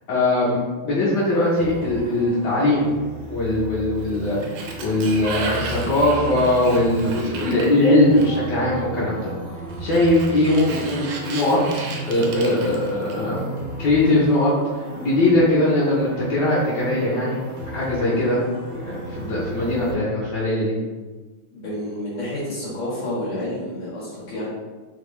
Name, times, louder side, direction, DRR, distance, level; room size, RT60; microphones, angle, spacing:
voice 1, 0.1-2.9 3.3-9.3 9.8-11.6 12.1-13.4 13.8-14.5 15.0-17.4 17.7-18.4 18.9-20.7, left 1 dB, 60° left, -8 dB, 1.4 m, -20 dB
sound 1, 1.1-19.9, right 1 dB, 40° right, 0.5 m, -35 dB
Sliding door, 4.0-8.6 9.7-13.4, right 3 dB, 85° right, 1.6 m, -35 dB
voice 2, 21.5-24.5, left 1 dB, 90° left, -9 dB, 2.6 m, -29 dB
4.8 x 2.7 x 3.2 m, 1.3 s
omnidirectional pair, 2.3 m